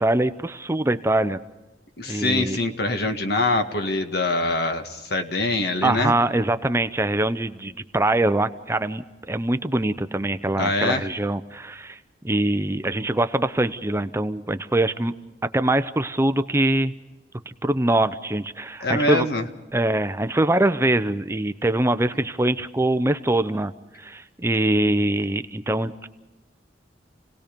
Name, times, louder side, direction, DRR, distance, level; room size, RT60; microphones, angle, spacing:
voice 1, 0.0-1.4 2.1-2.6 5.8-12.0 12.2-15.1 15.5-16.9 17.5-19.3 19.7-23.7 24.0-26.1, right 1 dB, 15° right, 11 dB, 0.6 m, -23 dB
voice 2, 2.0-6.1 10.6-11.1 18.8-19.4, left 2 dB, 65° left, 6 dB, 1.8 m, -24 dB
28.5 x 18.5 x 5.2 m, 1.1 s
head